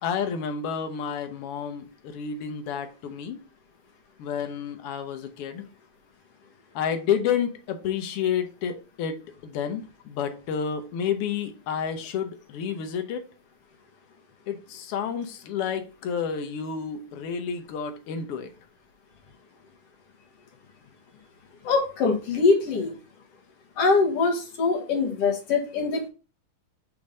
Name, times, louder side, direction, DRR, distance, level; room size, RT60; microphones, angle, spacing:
voice 1, 0.0-3.4 4.2-5.7 6.7-13.2 14.5-18.5, left 7 dB, 80° left, 1.3 m, -30 dB
voice 2, 21.6-22.9 23.8-26.1, left 4 dB, 60° left, 2.0 m, -23 dB
5.1 x 3.5 x 5.2 m
omnidirectional pair, 3.5 m